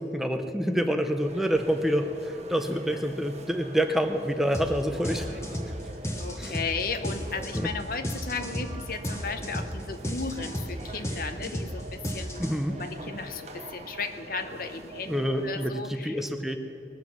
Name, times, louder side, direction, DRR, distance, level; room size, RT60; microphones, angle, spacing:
voice 1, 0.0-5.4 6.4-6.5 12.4-12.8 15.1-16.6, equal, ahead, 6 dB, 0.6 m, -27 dB
voice 2, 0.6-1.0 6.2-12.4 12.8-16.2, left 4 dB, 55° left, 9 dB, 0.8 m, -35 dB
sound 1, 1.2-15.7, right 2 dB, 35° right, 0.9 m, -44 dB
sound 2, 4.5-4.7 5.0-12.8, equal, 15° left, 1.2 m, -33 dB
20.0 x 7.6 x 6.1 m, 2.8 s
head